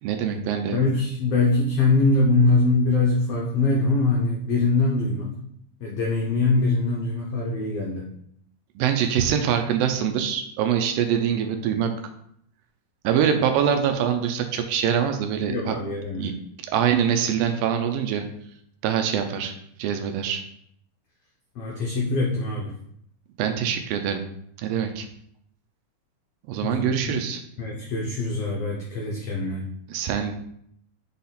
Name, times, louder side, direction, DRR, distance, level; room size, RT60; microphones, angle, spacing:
voice 1, 0.0-0.8 8.8-11.9 13.0-15.8 16.2-16.3 16.7-18.3 18.8-19.5 19.8-20.4 23.4-24.2 24.6-25.1 26.5-27.4 29.9-30.3, right 8 dB, 80° right, 6 dB, 2.2 m, -24 dB
voice 2, 0.7-5.4 5.8-8.0 15.5-16.3 21.6-22.7 26.6-27.2 27.6-29.6, left 3 dB, 80° left, -3 dB, 1.4 m, -23 dB
6.4 x 4.2 x 4.1 m, 0.70 s
omnidirectional pair, 4.3 m